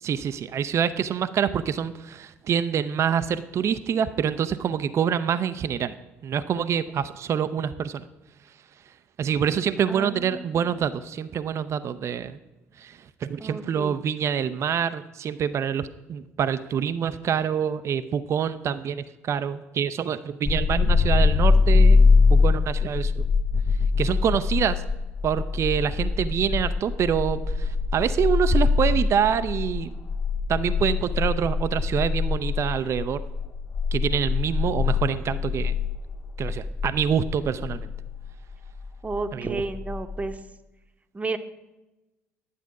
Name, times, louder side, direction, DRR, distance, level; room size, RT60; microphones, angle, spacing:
voice 1, 0.0-5.9 6.2-8.1 9.2-12.4 12.8-22.0 22.3-23.2 24.0-24.8 25.2-29.9 30.5-33.2 33.9-35.7 36.4-37.9 39.3-39.6, right 8 dB, 40° right, 12 dB, 0.5 m, -26 dB
voice 2, 9.9-10.8 13.4-14.0 39.0-40.4 41.1-41.4, right 3 dB, 20° right, 8 dB, 0.9 m, -32 dB
sound 1, 20.5-40.4, left 4 dB, 35° left, 0.9 m, -23 dB
11.0 x 8.1 x 5.9 m, 1.0 s
figure-of-eight pair, 50°, 7 cm